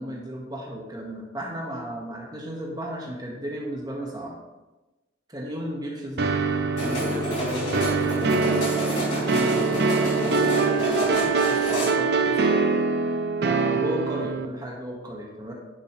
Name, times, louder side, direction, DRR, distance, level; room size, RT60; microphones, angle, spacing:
voice 1, 0.0-4.4 5.3-6.3 6.8-11.2 11.4-12.6 13.4-15.5, right 1 dB, 20° right, -2 dB, 1.7 m, -34 dB
sound 1, 6.2-14.4, right 4 dB, 55° right, 0.6 m, -24 dB
sound 2, 6.8-11.9, equal, 35° left, 3.1 m, -29 dB
10.0 x 6.7 x 3.3 m, 1.1 s
head